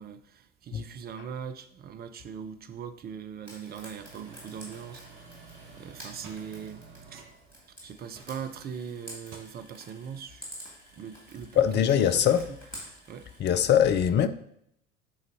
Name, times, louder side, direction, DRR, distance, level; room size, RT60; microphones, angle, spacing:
voice 1, 0.0-5.0 5.8-7.2 7.8-10.5 11.0-12.6 13.1-13.3, right 7 dB, 25° right, 0.6 m, -40 dB
Frying (food), 3.4-13.4, equal, 85° left, 1.9 m, -49 dB
sound 1, 4.0-8.8 9.1-9.4, right 4 dB, 50° right, 1.4 m, -51 dB
voice 2, 11.6-12.4 13.4-14.3, left 9 dB, 30° left, 0.5 m, -22 dB
10.0 x 4.0 x 2.8 m
figure-of-eight pair, 65°, 37 cm